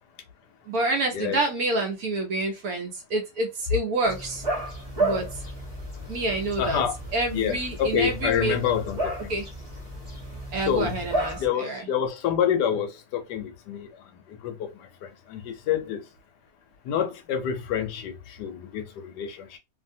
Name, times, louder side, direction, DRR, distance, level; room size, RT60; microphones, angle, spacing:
voice 1, 0.7-4.4 5.0-5.3 6.1-6.8 7.1-8.6 9.3-9.5 10.5-11.9, right 2 dB, 65° right, 1.0 m, -27 dB
sound 1, 4.0-11.5, right 1 dB, 25° right, 0.9 m, -32 dB
voice 2, 6.6-6.9 7.3-9.3 10.7-10.9 11.4-13.9 14.4-14.7 15.3-16.0 16.9-18.1 18.4-19.6, left 9 dB, 75° left, 1.1 m, -27 dB
2.7 x 2.6 x 2.6 m
omnidirectional pair, 1.9 m